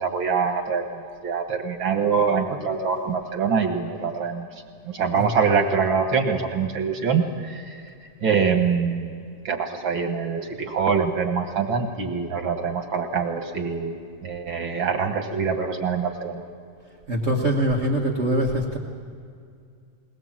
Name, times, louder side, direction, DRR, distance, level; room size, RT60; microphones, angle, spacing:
voice 1, 0.0-4.5 4.8-9.1 9.4-13.9 14.2-16.4, right 5 dB, 50° right, 4 dB, 1.5 m, -24 dB
voice 2, 17.1-18.8, right 1 dB, 85° right, -1 dB, 0.6 m, -23 dB
21.0 x 19.5 x 7.5 m, 2.3 s
omnidirectional pair, 3.8 m